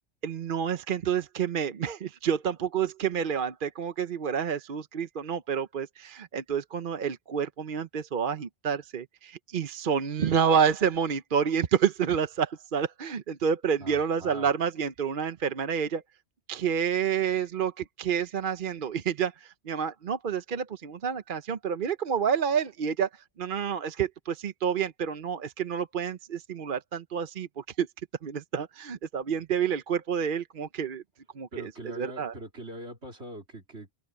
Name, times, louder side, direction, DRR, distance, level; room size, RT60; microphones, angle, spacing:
voice 1, 0.2-16.0 16.5-23.1 23.4-27.9 28.2-31.0 31.3-32.3, right 7 dB, 50° right, 0.9 m, -29 dB
voice 2, 13.8-14.5 31.5-33.9, right 1 dB, 70° right, 4.1 m, -42 dB
omnidirectional pair, 1.2 m